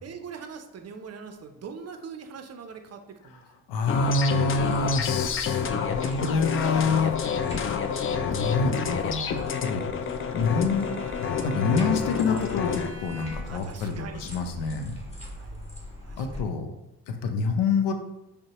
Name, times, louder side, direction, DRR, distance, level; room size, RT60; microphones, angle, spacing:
voice 1, 0.0-3.4 7.2-7.4 13.4-14.2 15.3-15.6 16.0-16.4, right 6 dB, 40° right, 6 dB, 0.5 m, -42 dB
voice 2, 3.7-7.1 8.3-9.8 10.3-10.9 11.4-15.0 16.2-16.7 17.1-17.9, left 4 dB, 75° left, 6 dB, 0.6 m, -27 dB
sound 1, 3.9-12.9, left 6 dB, 35° left, 0.4 m, -28 dB
sound 2, 4.6-16.4, left 1 dB, 15° left, 1.4 m, -43 dB
Bowed string instrument, 9.7-13.8, left 1 dB, 5° right, 1.4 m, -46 dB
5.2 x 2.2 x 2.9 m, 0.92 s
hypercardioid pair, 55°, 41 cm